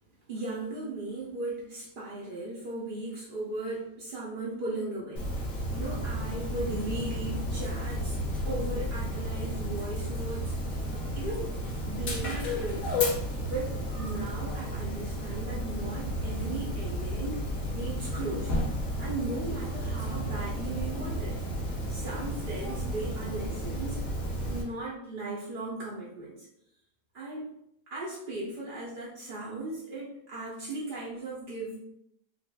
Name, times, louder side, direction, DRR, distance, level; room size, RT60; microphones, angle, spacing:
voice 1, 0.3-8.2 8.5-10.6 11.2-11.5 11.9-12.9 13.5-17.5 17.7-18.7 19.0-21.4 21.9-24.0 24.5-26.5 27.1-27.5 27.9-31.8, right 2 dB, 50° right, -6 dB, 0.6 m, -37 dB
Dog, 5.2-24.6, equal, 65° left, 1.3 m, -32 dB
5.5 x 2.4 x 2.2 m, 0.76 s
omnidirectional pair, 1.6 m